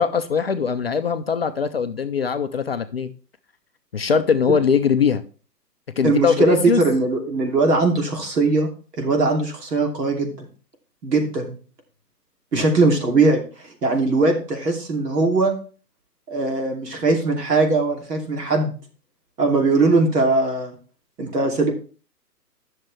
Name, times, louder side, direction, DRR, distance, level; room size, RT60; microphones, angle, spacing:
voice 1, 0.0-3.1 3.9-5.2 6.0-6.8 12.5-12.6, left 6 dB, 40° left, 9 dB, 0.4 m, -21 dB
voice 2, 6.0-8.7 9.0-10.5 11.0-11.6 12.5-13.4 13.8-15.5 16.3-18.7 19.4-20.7 21.2-21.7, right 3 dB, 70° right, 2 dB, 2.8 m, -20 dB
10.5 x 6.5 x 3.2 m, 0.38 s
figure-of-eight pair, 135°, 50 cm